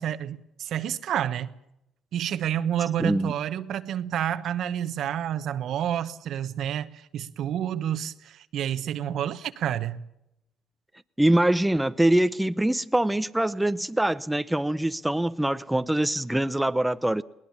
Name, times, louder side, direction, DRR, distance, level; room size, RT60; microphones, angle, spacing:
voice 1, 0.0-1.5 2.1-10.0, right 10 dB, 65° right, 1.0 m, -29 dB
voice 2, 3.0-3.3 11.2-17.2, right 1 dB, 5° right, 0.7 m, -24 dB
20.5 x 18.5 x 7.2 m
supercardioid pair, 75°, 0 cm